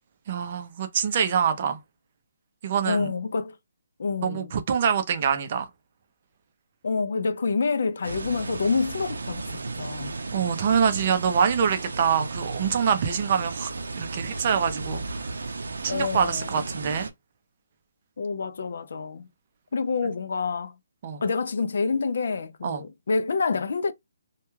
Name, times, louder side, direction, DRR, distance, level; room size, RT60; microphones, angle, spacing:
voice 1, 0.3-1.8 2.6-3.1 4.2-5.7 10.3-15.4 15.8-17.1 21.0-21.2 22.6-22.8, right 7 dB, 35° right, 0.4 m, -25 dB
voice 2, 2.8-3.6 4.0-4.5 6.8-10.2 15.9-16.6 18.2-19.3 19.7-20.8 21.2-23.9, left 4 dB, 60° left, 0.3 m, -27 dB
sound 1, 8.0-17.1, right 3 dB, 90° right, 0.5 m, -34 dB
2.2 x 2.2 x 3.0 m
hypercardioid pair, 170°, 0 cm